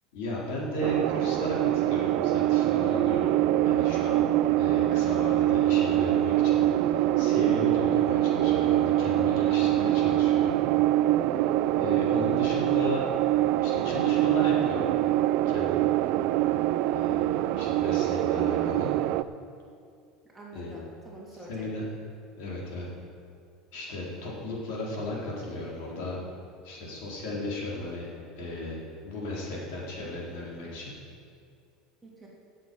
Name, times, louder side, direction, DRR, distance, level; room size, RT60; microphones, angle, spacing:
voice 1, 0.1-3.4 3.6-4.2 4.6-6.6 6.9-10.6 11.8-13.0 13.6-14.9 15.5-15.9 16.9-18.9 20.5-20.7 21.5-21.8 22.4-22.9 23.7-26.2 26.6-28.1 28.4-30.9, left 2 dB, 70° left, -4 dB, 4.0 m, -35 dB
sound 1, 0.8-19.2, right 14 dB, 60° right, 0.4 m, -24 dB
voice 2, 4.9-5.4 20.3-21.9 32.0-32.3, right 2 dB, 5° right, -6 dB, 2.7 m, -46 dB
18.0 x 7.8 x 5.5 m, 2.3 s
cardioid pair, 155°, 0 cm